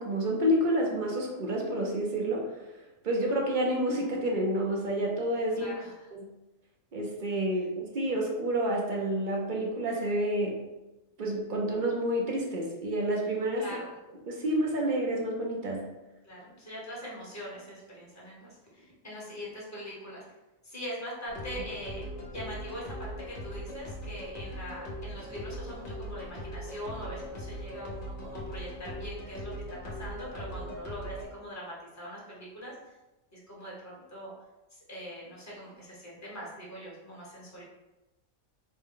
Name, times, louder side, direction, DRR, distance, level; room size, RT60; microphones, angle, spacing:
voice 1, 0.0-2.6 3.0-5.7 6.2-6.3 6.9-10.6 11.2-13.7 14.3-15.9, right 1 dB, 55° right, -1 dB, 0.6 m, -29 dB
voice 2, 5.5-6.1 13.6-13.9 16.2-20.2 20.6-29.5 29.8-32.8 33.3-34.3 34.7-37.6, equal, 15° left, -5 dB, 1.0 m, -42 dB
sound 1, 21.3-31.3, equal, 45° left, 0.9 m, -40 dB
4.1 x 2.0 x 3.7 m, 1.0 s
omnidirectional pair, 1.4 m